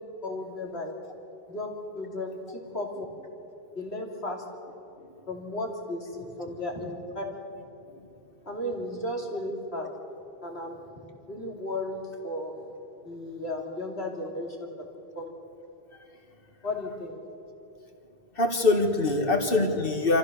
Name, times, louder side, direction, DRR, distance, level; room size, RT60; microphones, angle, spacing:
voice 1, 0.2-0.9 1.5-1.7 1.9-2.9 3.7-4.4 5.3-7.2 8.5-9.9 10.4-10.8 11.3-12.5 13.0-14.6 15.1-15.3 16.6-17.2, left 1 dB, 90° left, 0 dB, 3.1 m, -34 dB
voice 2, 18.4-20.2, left 2 dB, 65° left, 4 dB, 2.0 m, -24 dB
26.5 x 14.5 x 6.7 m, 2.9 s
omnidirectional pair, 1.0 m